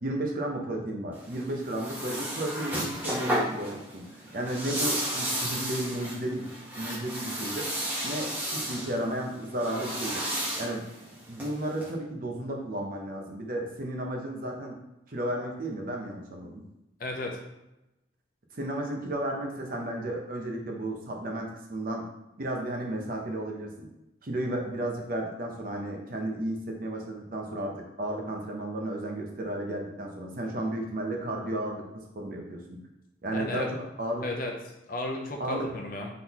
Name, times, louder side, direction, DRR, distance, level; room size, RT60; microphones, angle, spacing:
voice 1, 0.0-6.5 6.8-7.7 8.0-10.2 10.6-10.9 11.3-14.8 15.1-16.7 18.5-22.1 22.4-23.9 24.2-32.8 33.2-34.3 35.4-35.7, right 1 dB, 50° right, 1 dB, 0.7 m, -33 dB
sound 1, 1.1-11.9, right 1 dB, 10° right, 1.0 m, -33 dB
voice 2, 17.0-17.4 33.3-33.7 34.2-34.5 34.9-36.1, left 2 dB, 45° left, 1 dB, 0.6 m, -33 dB
3.8 x 3.8 x 2.9 m, 0.91 s
head